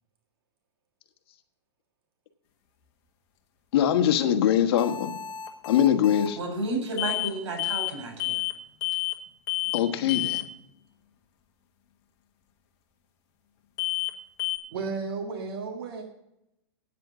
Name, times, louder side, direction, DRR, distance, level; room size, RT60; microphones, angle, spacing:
voice 1, 3.7-5.1 5.6-6.4 9.7-10.4, left 10 dB, 60° left, 1.4 m, -22 dB
sound 1, 4.8-6.3 7.0-7.3 7.6-7.9 8.2-8.6 8.8-9.2 9.5-9.8 10.1-10.5 13.8-14.1 14.4-14.6, left 16 dB, 40° left, 1.4 m, -30 dB
voice 2, 6.4-8.4, right 2 dB, 75° right, 4.7 m, -32 dB
voice 3, 14.7-16.0, right 4 dB, 60° right, 1.7 m, -33 dB
9.5 x 7.6 x 7.3 m
hypercardioid pair, 145°, 15 cm